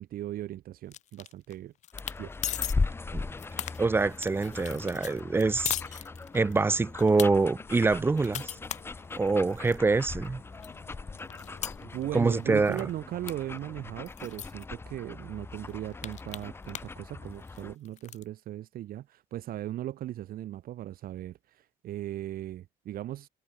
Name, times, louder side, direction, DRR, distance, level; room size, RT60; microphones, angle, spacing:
voice 1, 0.0-1.7 2.2-2.3 11.8-23.3, right 13 dB, 60° right, 2.2 m, -38 dB
sound 1, 0.9-1.5 1.8-2.2 2.4-2.8 3.2-6.6 7.0-7.3 7.8-9.8 10.2-10.3 10.6-12.4 12.7-12.9 13.3-13.4 13.6-13.7 14.1-14.6 15.2-15.3 15.6-17.0 17.3-18.2, left 11 dB, 45° left, 0.5 m, -38 dB
sound 2, 1.9-17.7, left 3 dB, 15° left, 0.9 m, -39 dB
sound 3, 2.5-12.6, left 15 dB, 80° left, 6.9 m, -59 dB
voice 2, 3.8-5.7 6.3-8.5 9.2-10.4 12.1-12.8, right 3 dB, 15° right, 0.5 m, -25 dB
cardioid pair, 155°, 17 cm